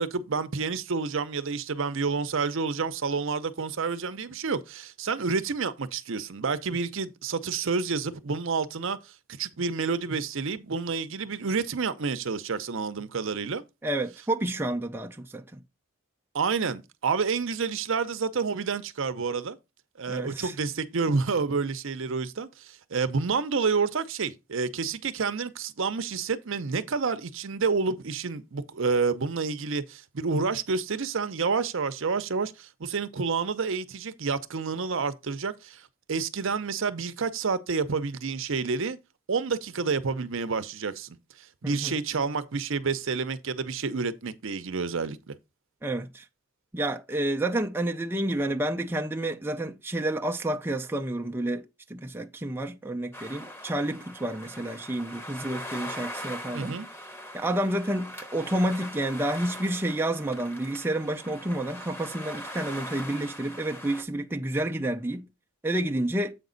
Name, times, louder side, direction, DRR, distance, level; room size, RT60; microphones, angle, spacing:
voice 1, 0.0-9.0 9.3-13.6 16.3-19.6 20.0-35.8 36.1-39.0 39.3-45.3 56.5-56.9, right 5 dB, 65° right, 0.7 m, -29 dB
voice 2, 13.8-15.6 20.1-20.5 41.6-42.0 45.8-46.2 46.7-56.8 57.3-65.3 65.6-66.3, right 1 dB, 10° right, 0.4 m, -30 dB
sound 1, 53.1-64.0, equal, 10° left, 0.9 m, -41 dB
7.9 x 5.2 x 3.9 m
head